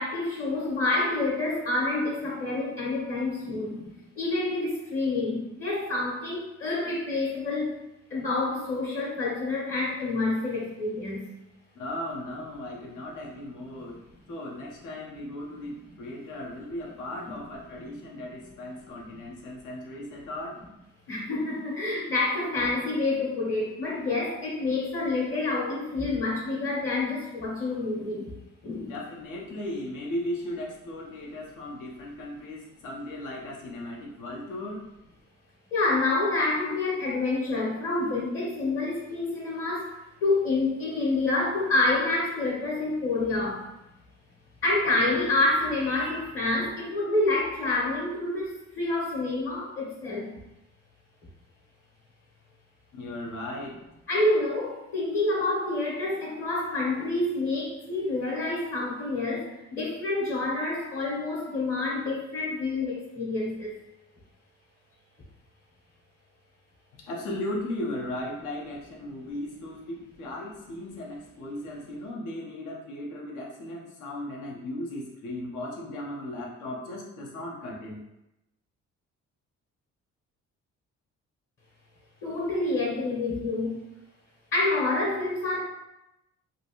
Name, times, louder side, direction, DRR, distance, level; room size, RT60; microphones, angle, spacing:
voice 1, 0.0-7.7 8.1-11.2 13.7-13.8 17.2-17.3 21.1-28.3 28.6-29.0 35.7-39.9 40.2-43.7 44.6-50.3 54.1-63.7 82.2-83.8 84.5-85.6, left 2 dB, 45° left, -5 dB, 1.0 m, -28 dB
voice 2, 11.7-20.5 28.9-34.8 52.9-53.8 67.1-78.0, left 1 dB, 85° left, -2 dB, 0.8 m, -37 dB
2.9 x 2.6 x 2.9 m, 0.91 s
cardioid pair, 90°, 30 cm